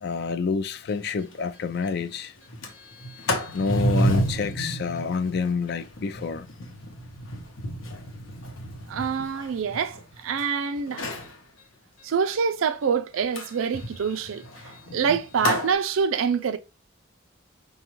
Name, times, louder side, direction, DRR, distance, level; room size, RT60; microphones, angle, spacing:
voice 1, 0.0-2.3 3.5-6.5, left 5 dB, 50° left, 0.3 m, -28 dB
Sliding door, 0.9-1.0 1.3-1.4 1.7-2.0 2.4-10.4 10.9-11.3 13.3-15.7, equal, 80° left, 0.8 m, -31 dB
voice 2, 8.9-11.1 12.0-14.4 14.9-16.6, right 6 dB, 80° right, 0.4 m, -26 dB
5.0 x 2.3 x 3.0 m
head